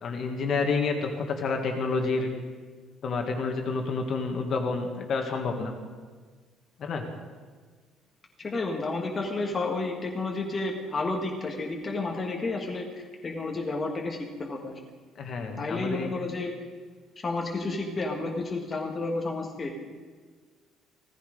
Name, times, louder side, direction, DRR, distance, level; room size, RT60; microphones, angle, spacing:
voice 1, 0.0-2.3 3.0-5.7 6.8-7.0 15.2-16.1, left 4 dB, 40° left, 4 dB, 1.7 m, -29 dB
voice 2, 8.4-14.7 15.6-16.5 17.2-19.9, left 3 dB, 20° left, 0 dB, 1.5 m, -31 dB
17.0 x 14.5 x 5.0 m, 1.5 s
cardioid pair, 165°, 0 cm